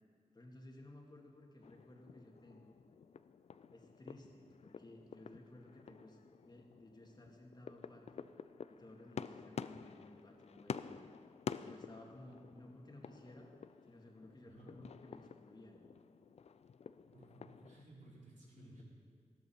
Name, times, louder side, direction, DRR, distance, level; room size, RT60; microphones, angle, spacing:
voice 1, 0.3-2.8 3.7-8.3 8.7-11.1 11.6-13.5 13.9-15.9 18.5-18.8, left 1 dB, 35° left, 1 dB, 2.1 m, -57 dB
sound 1, 1.6-17.8, left 6 dB, 60° left, 0.4 m, -50 dB
voice 2, 14.4-14.7 17.1-18.8, right 2 dB, 75° right, -5 dB, 3.6 m, -58 dB
14.0 x 12.5 x 4.5 m, 2.2 s
cardioid pair, 60°, 13 cm